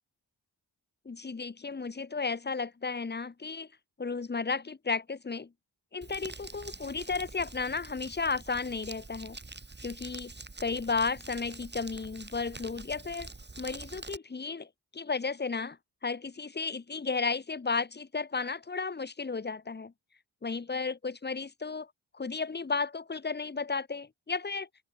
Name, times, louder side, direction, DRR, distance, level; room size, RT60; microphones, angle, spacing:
voice 1, 1.0-3.7 4.0-5.5 5.9-9.4 9.8-10.3 10.6-13.3 13.6-19.9 20.4-21.9 22.1-24.7, left 4 dB, 25° left, 0.8 m, -33 dB
Crumpling crinkling, 6.0-14.2, right 3 dB, 25° right, 1.6 m, -46 dB
open air
cardioid pair, 45°, 43 cm